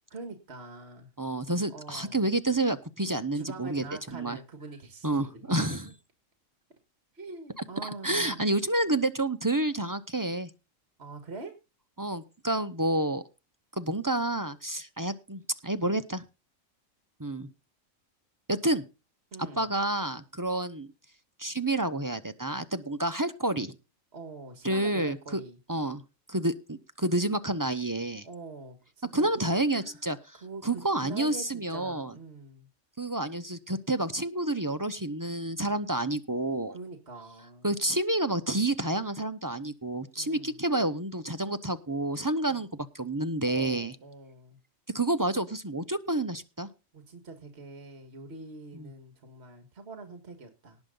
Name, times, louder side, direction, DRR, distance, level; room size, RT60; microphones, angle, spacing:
voice 1, 0.1-1.1 1.7-2.2 3.3-5.9 7.1-8.5 11.0-11.5 19.3-19.7 24.1-25.6 28.2-30.0 30.4-32.7 36.7-37.7 40.2-40.6 42.5-42.6 43.5-44.6 46.9-50.8, right 3 dB, 55° right, 6 dB, 2.0 m, -44 dB
voice 2, 1.2-3.9 4.1-4.4 5.0-5.9 7.8-10.5 12.0-13.2 13.8-16.2 17.2-17.5 18.5-18.8 19.6-20.9 21.4-23.7 24.6-25.4 25.7-26.0 26.3-28.3 29.1-30.4 30.6-32.1 33.0-36.7 37.6-44.0 44.9-46.7 48.7-48.9, right 1 dB, 20° right, 10 dB, 0.6 m, -29 dB
18.5 x 6.7 x 3.8 m, 0.29 s
omnidirectional pair, 1.4 m